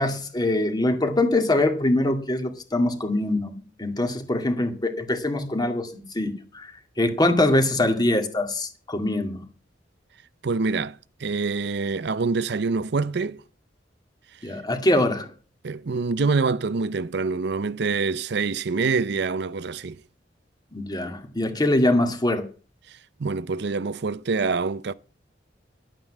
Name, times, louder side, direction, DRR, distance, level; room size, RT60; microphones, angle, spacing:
voice 1, 0.0-9.4 14.4-15.3 20.7-22.4, left 1 dB, 25° left, 2.1 m, -23 dB
voice 2, 10.4-13.4 15.6-20.0 22.9-24.9, right 4 dB, 65° right, 0.6 m, -26 dB
12.0 x 9.0 x 7.4 m
head